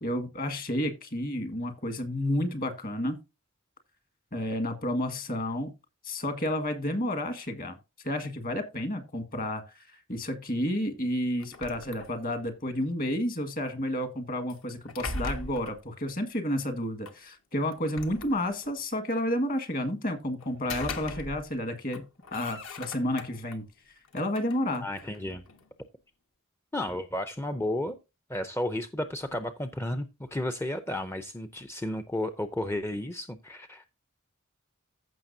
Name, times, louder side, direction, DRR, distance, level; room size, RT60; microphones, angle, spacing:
voice 1, 0.0-3.2 4.3-5.7 6.0-7.8 8.0-22.0 22.3-23.7 24.1-24.8, left 1 dB, 40° left, 1.6 m, -31 dB
sound 1, 11.4-12.5 14.5-15.8 17.0-17.2 17.7-18.8 20.4-21.6 21.9-23.6 24.0-25.7, left 2 dB, 65° left, 1.2 m, -40 dB
voice 2, 24.8-25.4 26.7-28.0 28.3-33.9, left 1 dB, 10° left, 0.5 m, -33 dB
15.0 x 5.9 x 2.7 m
head